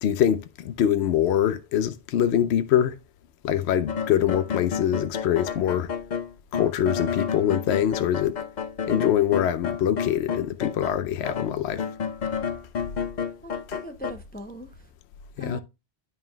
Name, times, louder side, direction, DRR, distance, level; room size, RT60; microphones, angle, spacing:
voice 1, 0.0-3.0 3.4-5.9 6.5-8.4 8.8-11.8 15.4-15.6, left 10 dB, 75° left, 0.8 m, -24 dB
sound 1, 3.9-11.0 11.2-14.1, left 7 dB, 50° left, 0.7 m, -30 dB
voice 2, 13.4-14.9 15.4-15.6, equal, 10° left, 0.4 m, -39 dB
9.2 x 5.6 x 2.2 m
omnidirectional pair, 1.1 m